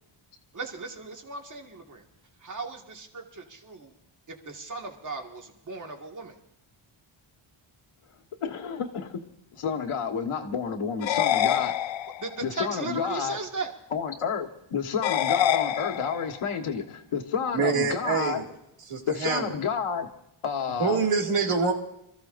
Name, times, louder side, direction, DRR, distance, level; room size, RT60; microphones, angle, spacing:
voice 1, 0.5-2.0 2.4-3.9 4.3-6.4 12.2-13.7, right 3 dB, 35° right, 2 dB, 1.9 m, -37 dB
voice 2, 8.4-9.2 9.5-11.7 12.4-13.4 13.9-18.4 19.1-20.1 20.4-21.0, left 6 dB, 80° left, 4 dB, 1.5 m, -30 dB
sound 1, 11.0-12.4 15.0-16.4, left 11 dB, 65° left, 0.6 m, -26 dB
voice 3, 17.5-18.4 18.9-19.6 20.8-21.7, right 5 dB, 90° right, 1 dB, 2.4 m, -25 dB
27.0 x 14.5 x 2.6 m, 0.79 s
wide cardioid pair, 165°, 50 cm